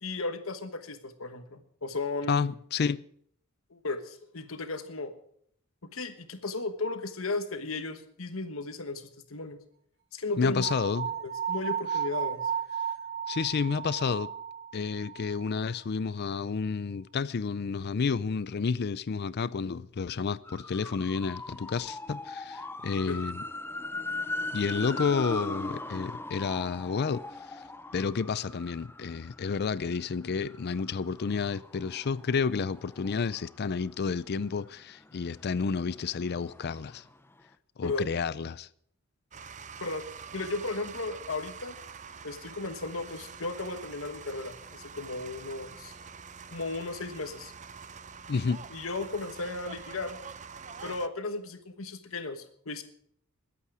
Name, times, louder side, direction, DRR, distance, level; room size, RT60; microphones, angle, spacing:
voice 1, 0.0-2.5 3.7-5.1 5.9-9.6 10.1-10.7 11.0-12.5 23.1-23.2 37.8-38.0 39.8-40.0 40.3-41.8 42.2-45.9 46.5-47.5 48.7-50.2 50.8-52.8, left 3 dB, 80° left, 1.3 m, -35 dB
voice 2, 2.3-3.0 10.4-11.1 13.3-14.3 14.7-23.4 24.5-27.2 27.5-27.6 27.9-37.0 37.8-38.7 48.3-48.6, left 5 dB, 50° left, 0.5 m, -30 dB
sound 1, 10.6-15.7, right 8 dB, 55° right, 4.6 m, -34 dB
sound 2, 20.4-34.2 34.6-37.2 37.4-37.5, left 2 dB, 10° left, 0.7 m, -40 dB
sound 3, 39.3-51.1, right 6 dB, 35° right, 0.7 m, -45 dB
21.0 x 8.5 x 4.9 m
head